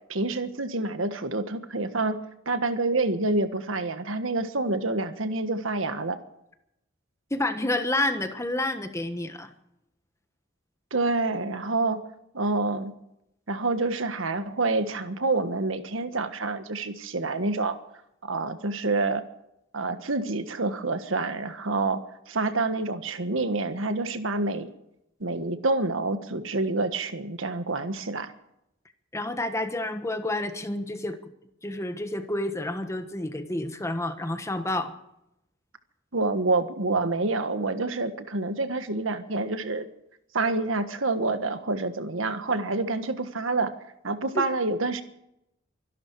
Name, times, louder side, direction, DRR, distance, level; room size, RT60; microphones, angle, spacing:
voice 1, 0.1-2.2 2.4-6.2 10.9-12.0 12.3-12.9 13.5-17.8 18.2-19.2 19.7-22.0 22.3-24.7 25.2-28.3 36.1-39.8 40.3-43.7 44.0-45.0, right 3 dB, 80° right, 9 dB, 1.5 m, -27 dB
voice 2, 7.3-9.5 29.1-31.2 31.6-34.9 44.3-44.4, left 1 dB, 15° left, 8 dB, 1.4 m, -29 dB
24.5 x 12.0 x 4.8 m, 0.80 s
head